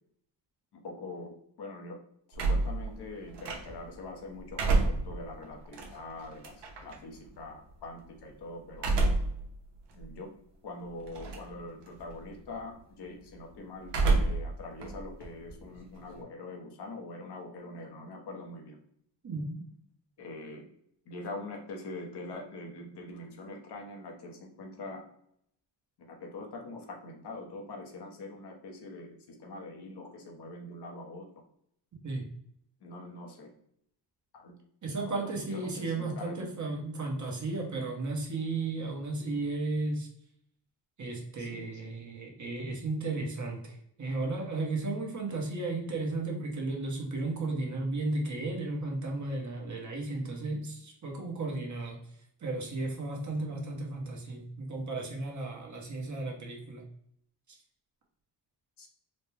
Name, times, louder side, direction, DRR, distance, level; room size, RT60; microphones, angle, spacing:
voice 1, 0.7-2.0 2.3-9.0 9.9-10.3 10.6-18.8 20.2-20.6 21.0-25.0 26.0-31.3 32.8-33.5 34.3-34.5 35.0-36.5 39.2-39.4 41.4-41.9 58.8-58.9, left 2 dB, 65° left, 1 dB, 0.9 m, -44 dB
sound 1, 2.3-4.0 4.4-7.0 8.7-9.4 9.9-10.0 11.1-11.6 11.9-12.3 13.9-14.5 14.8-16.2, right 3 dB, 70° right, 1.0 m, -29 dB
voice 2, 19.2-19.6 32.0-32.2 34.8-40.1 41.0-52.0 52.4-56.8 57.5-57.6, right 2 dB, 40° right, 0 dB, 1.1 m, -34 dB
4.1 x 2.2 x 3.3 m, 0.69 s
cardioid pair, 100°, 43 cm